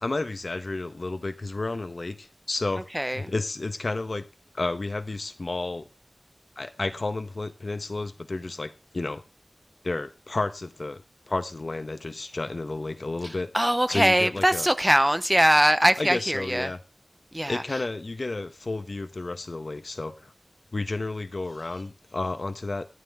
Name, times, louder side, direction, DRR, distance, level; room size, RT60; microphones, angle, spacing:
voice 1, 0.0-2.9 3.1-4.3 4.5-5.9 6.6-9.2 9.8-13.5 13.9-14.7 16.0-16.8 17.5-20.3 20.7-23.0, left 2 dB, 70° left, 1.3 m, -31 dB
voice 2, 2.9-3.3 13.2-16.7 17.3-17.6, equal, 15° right, 1.0 m, -22 dB
13.0 x 9.5 x 3.8 m
wide cardioid pair, 45°, 0 cm